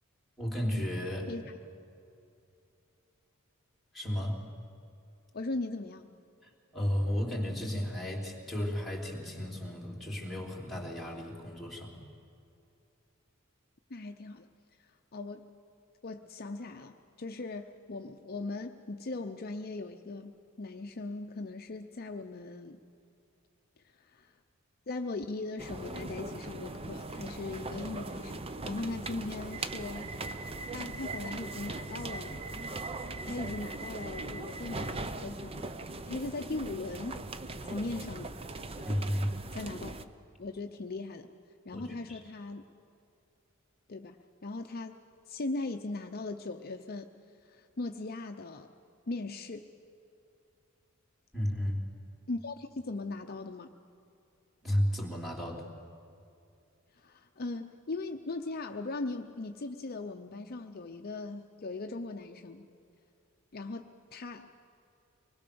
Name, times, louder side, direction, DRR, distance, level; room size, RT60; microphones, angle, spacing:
voice 1, 0.4-1.3 3.9-4.4 6.4-11.9 38.8-39.4 41.7-42.2 51.3-51.8 54.6-55.6, equal, ahead, -2 dB, 3.4 m, -33 dB
voice 2, 5.3-6.1 13.9-14.5 14.8-15.5 16.0-22.8 23.8-24.3 24.9-28.4 28.6-30.1 30.4-32.4 33.2-35.7 36.1-37.2 37.6-38.4 39.5-39.9 40.4-41.3 41.7-42.7 43.9-45.0 45.3-47.1 47.4-48.7 49.1-49.7 52.3-53.7 56.9-62.7 63.5-64.5, left 2 dB, 45° left, 5 dB, 0.7 m, -39 dB
sound 1, 25.6-40.0, right 2 dB, 25° right, 0.7 m, -40 dB
24.5 x 20.5 x 7.0 m, 2.6 s
head